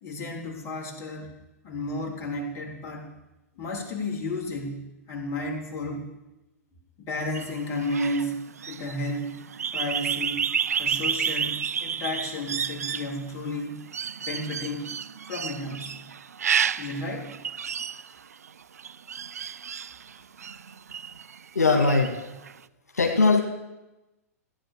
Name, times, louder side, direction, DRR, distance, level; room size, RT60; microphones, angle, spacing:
voice 1, 0.0-1.3 1.6-3.1 3.5-6.1 7.0-8.4 8.7-9.4 9.7-10.5 10.8-13.8 14.2-14.9 15.3-16.0 16.8-17.3, left 1 dB, 35° left, -1 dB, 3.4 m, -32 dB
sound 1, 7.3-21.4 21.8-22.5, right 7 dB, 75° right, 0.4 m, -31 dB
voice 2, 21.6-22.2 22.9-23.4, left 3 dB, 85° left, 2 dB, 2.0 m, -20 dB
15.0 x 9.2 x 6.8 m, 1.0 s
figure-of-eight pair, 110°, 9 cm